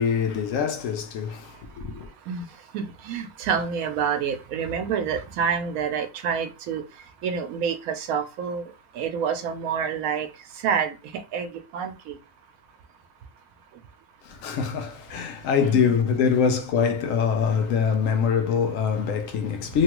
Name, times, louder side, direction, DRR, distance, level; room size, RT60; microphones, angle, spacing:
voice 1, 0.0-2.1 14.2-19.8, left 6 dB, 75° left, 0.9 m, -24 dB
voice 2, 2.7-6.8 7.2-8.6 8.9-10.3 10.6-10.9 11.3-12.2, right 7 dB, 85° right, 1.0 m, -27 dB
3.0 x 2.2 x 2.9 m
omnidirectional pair, 1.4 m